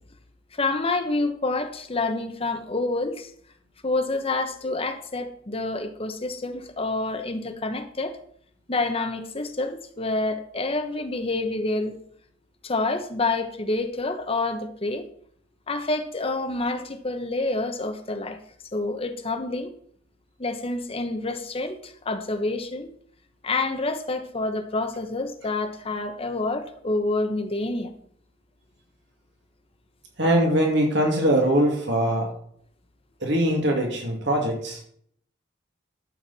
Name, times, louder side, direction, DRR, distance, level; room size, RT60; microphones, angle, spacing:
voice 1, 0.5-3.3 3.8-8.2 8.7-12.0 12.6-15.1 15.7-18.4 18.7-19.7 20.4-22.9 23.4-27.9, left 2 dB, 30° left, 1.0 m, -28 dB
voice 2, 30.2-32.3 33.2-34.8, right 1 dB, 65° right, 2.5 m, -22 dB
12.5 x 7.9 x 4.2 m
head